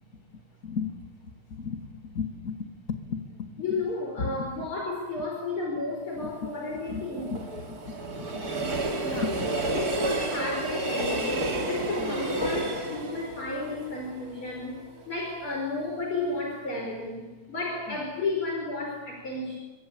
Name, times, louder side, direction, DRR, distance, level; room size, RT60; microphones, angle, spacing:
voice 1, 0.1-3.9 4.2-4.7 6.2-6.3 6.7-8.5 9.0-9.7 12.0-12.3 17.9-18.0, left 5 dB, 40° left, 6 dB, 2.6 m, -36 dB
voice 2, 3.6-7.3 9.7-14.8 15.1-19.6, left 3 dB, 70° left, 0 dB, 5.8 m, -33 dB
Train, 6.1-15.2 15.6-15.7, right 2 dB, 40° right, 3.4 m, -31 dB
27.0 x 23.5 x 8.9 m, 1.1 s
omnidirectional pair, 2.4 m